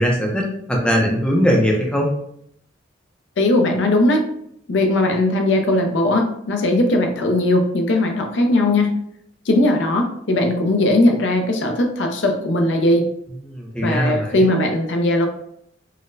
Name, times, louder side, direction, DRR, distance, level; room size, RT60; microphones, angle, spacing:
voice 1, 0.0-2.1 13.5-14.5, equal, 5° left, -1 dB, 0.5 m, -20 dB
voice 2, 3.4-4.2 4.7-8.9 9.5-13.0 13.8-15.3, left 1 dB, 70° left, 3 dB, 0.5 m, -18 dB
3.9 x 2.1 x 2.5 m, 0.71 s
head